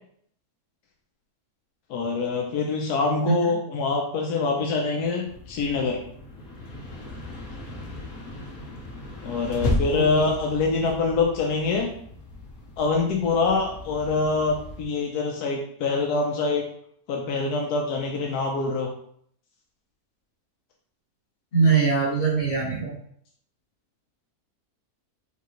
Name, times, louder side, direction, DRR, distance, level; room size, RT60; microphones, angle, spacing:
voice 1, 1.9-6.0 9.2-11.9 12.8-16.6 17.1-18.9, left 3 dB, 90° left, 0 dB, 1.2 m, -25 dB
voice 2, 3.2-3.6 9.9-10.4 21.5-23.0, right 5 dB, 55° left, -5 dB, 1.9 m, -23 dB
sound 1, 5.2-14.8, left 1 dB, 70° left, 1.4 m, -35 dB
5.8 x 3.0 x 3.0 m, 0.64 s
omnidirectional pair, 1.6 m